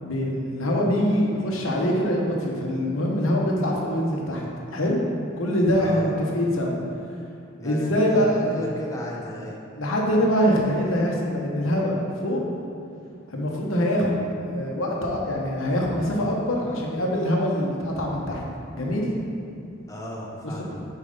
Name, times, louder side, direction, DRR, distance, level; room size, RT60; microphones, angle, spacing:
voice 1, 0.0-4.5 4.7-5.1 5.4-6.7 7.6-8.5 9.8-12.4 13.3-18.4 18.7-19.1, equal, 80° left, -1 dB, 1.0 m, -24 dB
voice 2, 5.8-6.1 7.6-9.6 19.9-20.8, left 1 dB, 15° left, -4 dB, 0.8 m, -34 dB
5.0 x 4.6 x 5.4 m, 2.6 s
head